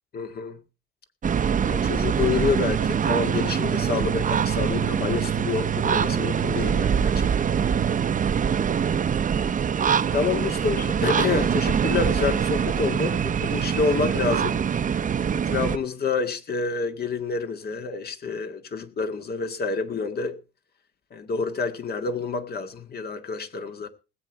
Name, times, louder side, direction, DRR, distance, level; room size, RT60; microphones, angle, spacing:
voice 1, 0.1-0.6 1.6-7.5 10.1-14.6 15.3-20.3 21.1-23.9, left 5 dB, 50° left, 1.9 m, -28 dB
sound 1, 1.2-15.8, right 7 dB, 40° right, 0.8 m, -24 dB
19.5 x 8.2 x 4.5 m
cardioid pair, 90°, 20 cm